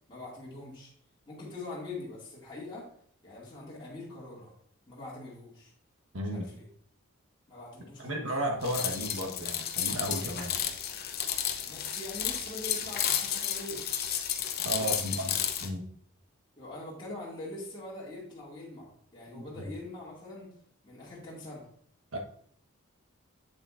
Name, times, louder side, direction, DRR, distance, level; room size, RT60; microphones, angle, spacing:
voice 1, 0.1-0.9 1.3-2.9 3.2-4.5 4.9-5.7 6.3-6.7 7.5-8.2 11.7-14.0 14.8-15.3 16.6-20.5 20.8-21.7, left 2 dB, 20° left, -6 dB, 2.2 m, -43 dB
voice 2, 6.1-6.5 8.0-10.6 14.6-15.9 19.3-19.4 22.1-22.2, right 1 dB, 75° right, 2 dB, 1.3 m, -34 dB
sound 1, 8.6-15.7, left 9 dB, 45° left, 0.7 m, -32 dB
7.9 x 7.8 x 2.5 m, 0.62 s
head